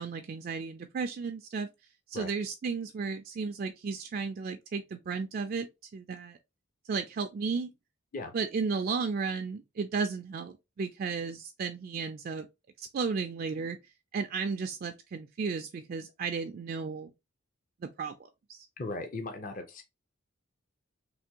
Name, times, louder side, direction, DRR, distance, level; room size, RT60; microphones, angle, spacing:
voice 1, 0.0-1.7 2.1-5.7 5.9-6.4 6.9-7.7 8.3-12.5 12.8-13.8 14.1-17.1 18.0-18.1 18.5-18.7, right 5 dB, 45° right, 0.3 m, -34 dB
voice 2, 18.8-19.8, left 2 dB, 40° left, 0.5 m, -38 dB
3.4 x 2.6 x 2.8 m
head